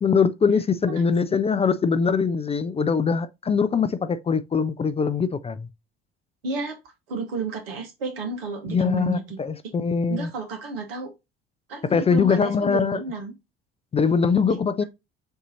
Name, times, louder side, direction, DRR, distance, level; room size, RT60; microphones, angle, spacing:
voice 1, 0.0-5.7 8.7-10.3 11.8-13.0 13.9-14.8, left 5 dB, 20° left, 0.5 m, -22 dB
voice 2, 6.4-6.8 7.1-9.4 10.1-11.1 11.7-13.3, right 3 dB, 75° right, 1.3 m, -32 dB
7.0 x 2.7 x 2.7 m
figure-of-eight pair, 55°, 29 cm